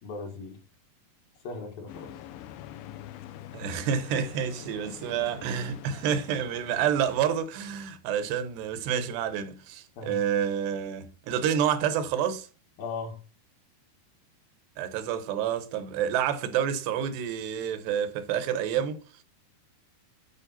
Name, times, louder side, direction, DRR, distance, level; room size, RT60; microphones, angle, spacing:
voice 1, 0.0-0.6 1.4-2.1 10.0-10.2 12.8-13.2, left 4 dB, 65° left, 3.0 m, -37 dB
sound 1, 1.9-7.4, left 12 dB, 80° left, 2.3 m, -45 dB
voice 2, 3.5-12.5 14.8-19.0, right 8 dB, 85° right, 3.0 m, -28 dB
9.9 x 4.9 x 4.0 m
omnidirectional pair, 4.7 m